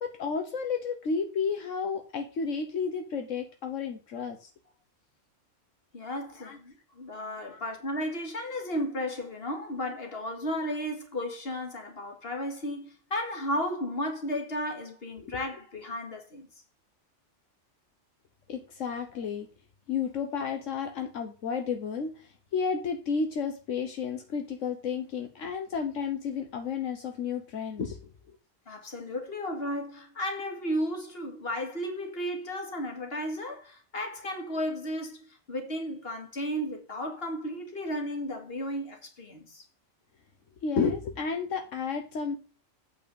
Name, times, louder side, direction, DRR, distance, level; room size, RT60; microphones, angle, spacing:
voice 1, 0.0-4.5 6.4-6.6 7.5-7.6 15.2-15.3 18.5-19.5 19.9-28.1 40.6-42.4, left 5 dB, 80° left, 1.4 m, -32 dB
voice 2, 5.9-16.5 19.1-19.2 28.7-39.6, equal, 50° left, 2.3 m, -34 dB
8.5 x 4.5 x 7.0 m
omnidirectional pair, 1.3 m